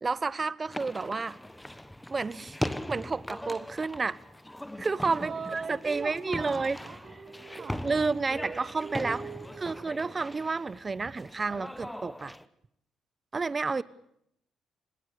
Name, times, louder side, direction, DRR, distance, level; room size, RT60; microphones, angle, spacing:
voice 1, 0.0-1.4 2.1-2.6 2.9-4.2 4.8-6.8 7.6-9.2 9.6-12.3 13.3-13.8, right 4 dB, 30° right, 1.0 m, -30 dB
sound 1, 0.7-12.4, left 1 dB, 5° left, 1.2 m, -40 dB
voice 2, 5.2-8.0 8.3-9.9 13.7-13.8, right 5 dB, 45° right, 1.9 m, -41 dB
27.0 x 20.5 x 6.7 m
cardioid pair, 90°, 0 cm